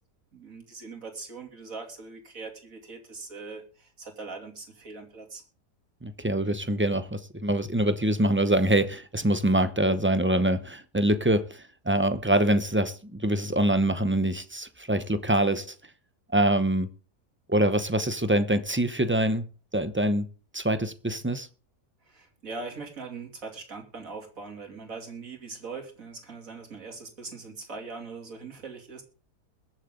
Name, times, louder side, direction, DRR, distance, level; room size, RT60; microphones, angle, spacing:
voice 1, 0.3-5.4 22.0-29.0, right 4 dB, 55° right, 3.2 m, -41 dB
voice 2, 6.0-15.7 16.3-16.9 17.5-19.4 19.7-20.3 20.5-21.5, right 1 dB, 15° right, 0.5 m, -25 dB
21.5 x 7.4 x 3.8 m
omnidirectional pair, 1.7 m